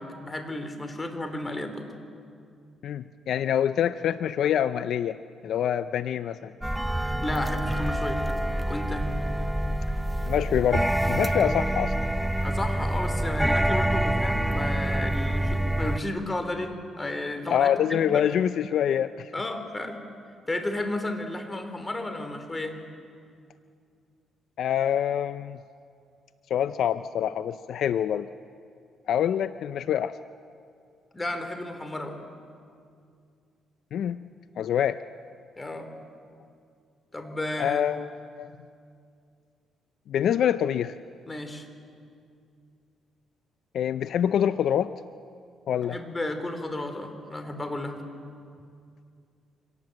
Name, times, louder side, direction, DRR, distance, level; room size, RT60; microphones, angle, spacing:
voice 1, 0.0-1.9 7.2-8.2 8.7-9.1 12.4-18.2 19.3-20.0 20.5-22.8 31.1-32.2 35.6-35.9 37.1-38.0 41.3-41.7 45.8-48.0, left 1 dB, 20° left, 7 dB, 3.1 m, -33 dB
voice 2, 2.8-5.2 5.4-6.5 10.3-11.9 17.5-19.3 24.6-25.6 26.5-28.3 29.1-30.1 33.9-34.2 34.6-35.0 37.6-38.1 38.4-38.5 40.1-40.9 43.7-44.9 45.7-46.0, left 9 dB, 70° left, 13 dB, 0.5 m, -25 dB
sound 1, 6.6-16.0, right 1 dB, 5° right, 0.5 m, -26 dB
25.5 x 18.0 x 7.6 m, 2.4 s
cardioid pair, 90°, 0 cm